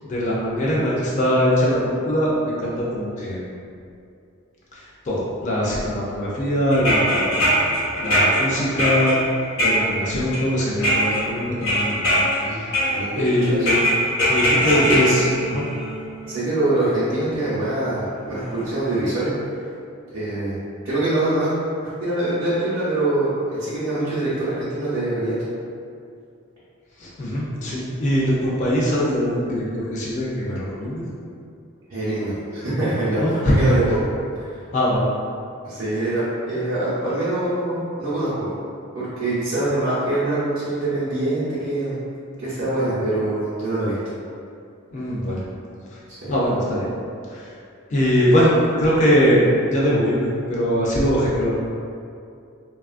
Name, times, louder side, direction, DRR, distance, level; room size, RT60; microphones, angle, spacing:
voice 1, 0.0-3.5 4.7-7.3 8.0-9.2 9.6-12.0 12.5-12.7 13.2-13.8 14.3-15.6 27.0-31.0 33.2-33.6 34.7-35.0 44.9-45.4 45.9-46.0 46.3-46.9 47.3-47.5 47.9-51.5, equal, 35° left, -6 dB, 0.4 m, -21 dB
sound 1, 6.7-10.5 10.8-11.2 11.6-12.4 12.7-13.3 13.7-16.3 17.3-17.4 18.5-18.6 18.9-19.0, equal, 70° left, 0.7 m, -21 dB
voice 2, 12.9-13.7 14.6-15.0 16.3-19.3 20.1-20.6 20.8-21.5 21.8-25.3 31.9-33.8 34.3-34.6 35.6-38.5 38.9-42.0 42.4-44.0 46.1-46.3, right 2 dB, 60° right, -12 dB, 0.7 m, -24 dB
3.0 x 2.3 x 2.4 m, 2.4 s
head